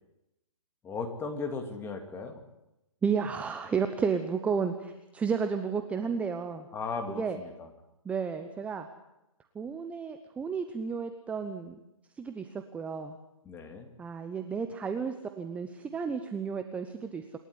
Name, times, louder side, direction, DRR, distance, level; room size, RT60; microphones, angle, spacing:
voice 1, 0.8-2.4 6.7-7.7 13.5-13.9, left 4 dB, 15° left, 5 dB, 2.3 m, -36 dB
voice 2, 3.0-6.7 7.1-7.4 8.0-8.9 9.5-11.8 12.2-13.2 14.0-17.2, right 6 dB, 5° right, 8 dB, 0.8 m, -32 dB
27.0 x 12.0 x 9.7 m, 0.92 s
hypercardioid pair, 145°, 18 cm